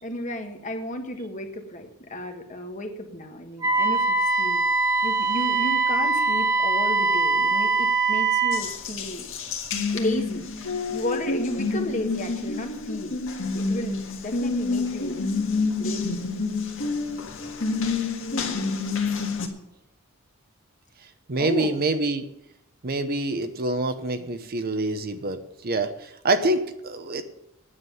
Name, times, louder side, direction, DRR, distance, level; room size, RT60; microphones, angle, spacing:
voice 1, 0.0-4.6 5.0-9.3 9.9-10.5 10.9-13.2 13.5-15.2 15.8-16.2 21.4-21.8, left 1 dB, 35° left, 5 dB, 1.5 m, -33 dB
Wind instrument woodwind instrument, 3.6-8.7, right 3 dB, 15° right, 1.6 m, -22 dB
Water tap faucet, 8.5-19.5, left 4 dB, 65° left, 1.8 m, -28 dB
voice 2, 21.3-22.3 22.8-27.2, right 2 dB, 45° right, 9 dB, 0.9 m, -26 dB
9.7 x 7.6 x 9.3 m, 0.81 s
head